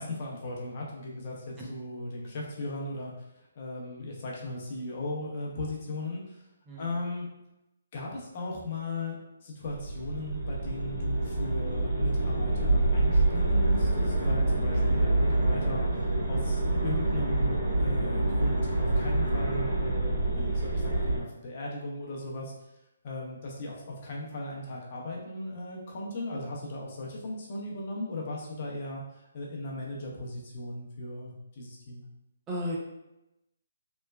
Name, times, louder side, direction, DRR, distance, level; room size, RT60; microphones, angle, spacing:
voice 1, 0.0-3.1 3.6-6.4 6.8-7.3 7.9-22.5 23.0-29.0 29.3-32.0, left 2 dB, 45° left, -2 dB, 0.7 m, -37 dB
voice 2, 6.7-7.0 32.5-32.8, equal, 15° right, -4 dB, 0.5 m, -34 dB
sound 1, 9.7-21.2, right 2 dB, 60° right, 1.4 m, -26 dB
3.1 x 2.2 x 2.2 m, 0.90 s
hypercardioid pair, 150°, 0 cm